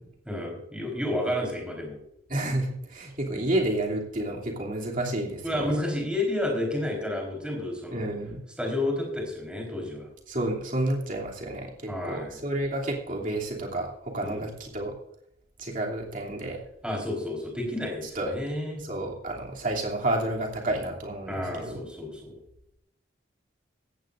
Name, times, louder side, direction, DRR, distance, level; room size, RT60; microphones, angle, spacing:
voice 1, 0.2-2.0 5.4-8.1 8.6-10.1 11.9-12.4 14.2-14.5 16.8-18.8 21.3-22.4, left 1 dB, 5° right, 0 dB, 4.2 m, -31 dB
voice 2, 2.3-5.8 7.9-8.5 10.3-14.9 15.6-16.6 18.1-18.4 18.8-21.8, right 1 dB, 45° right, -2 dB, 2.9 m, -30 dB
16.5 x 14.5 x 2.6 m, 0.76 s
head